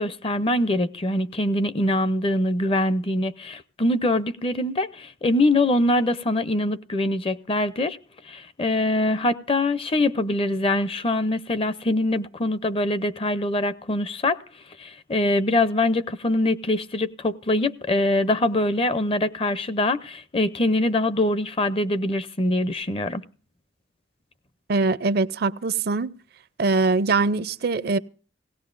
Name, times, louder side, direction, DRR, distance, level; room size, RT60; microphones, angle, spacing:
voice 1, 0.0-8.0 8.3-14.4 14.8-23.2, left 1 dB, 30° left, 0.6 m, -23 dB
voice 2, 24.7-26.1 26.6-28.0, right 3 dB, 55° right, 0.5 m, -22 dB
18.0 x 17.0 x 2.5 m
head